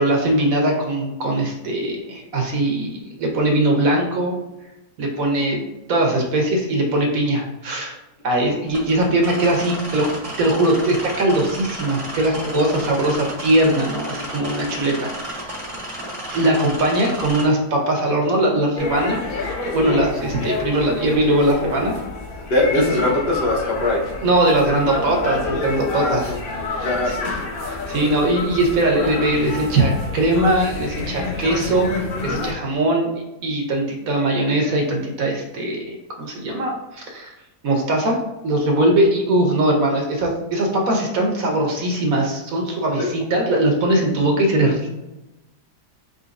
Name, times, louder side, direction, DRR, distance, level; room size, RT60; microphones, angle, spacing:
voice 1, 0.0-4.3 5.0-5.6 5.9-7.9 8.2-10.1 10.4-15.1 15.4-15.5 16.3-19.2 19.6-21.9 22.7-22.9 24.2-26.3 26.8-27.2 27.7-33.1 33.4-37.3 37.6-38.2 38.4-45.0, right 1 dB, 60° right, 1 dB, 1.1 m, -20 dB
sound 1, 8.7-17.4, right 1 dB, 25° right, 0.9 m, -33 dB
sound 2, 18.8-32.5, left 3 dB, 55° left, 0.6 m, -29 dB
voice 2, 22.5-24.0 25.9-26.4 26.8-27.3 43.0-43.1, left 2 dB, 80° left, -2 dB, 1.6 m, -21 dB
4.4 x 3.9 x 2.5 m, 0.98 s
omnidirectional pair, 1.8 m